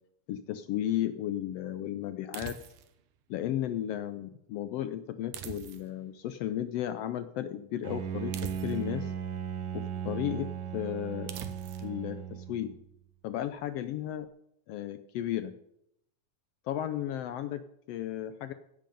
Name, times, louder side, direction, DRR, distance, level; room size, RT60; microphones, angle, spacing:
voice 1, 0.3-2.5 3.3-9.1 9.7-11.3 11.8-12.7 13.2-14.3 14.7-15.5 16.6-18.5, left 11 dB, 85° left, 11 dB, 1.4 m, -34 dB
sound 1, 2.3-3.0 5.3-6.1 8.3-9.0 11.3-11.9, right 10 dB, 80° right, 2.3 m, -43 dB
Bowed string instrument, 7.8-12.8, right 8 dB, 60° right, 1.2 m, -36 dB
16.5 x 7.6 x 5.2 m, 0.75 s
omnidirectional pair, 3.4 m